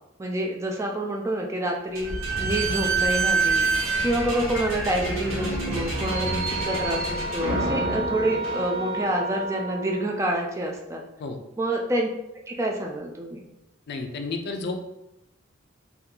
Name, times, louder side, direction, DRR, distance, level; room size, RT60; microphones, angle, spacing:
voice 1, 0.2-3.7 4.0-11.0 11.6-12.1 12.5-13.4, right 1 dB, 15° right, 0 dB, 0.4 m, -27 dB
Slam / Squeak, 1.9-9.2, right 3 dB, 85° right, 1.1 m, -27 dB
sound 1, 3.1-8.3, left 1 dB, 15° left, 0.9 m, -40 dB
sound 2, 5.9-10.3, right 2 dB, 60° right, 1.0 m, -32 dB
voice 2, 13.9-14.8, left 3 dB, 55° left, 5 dB, 0.4 m, -31 dB
2.7 x 2.3 x 3.6 m, 0.88 s
head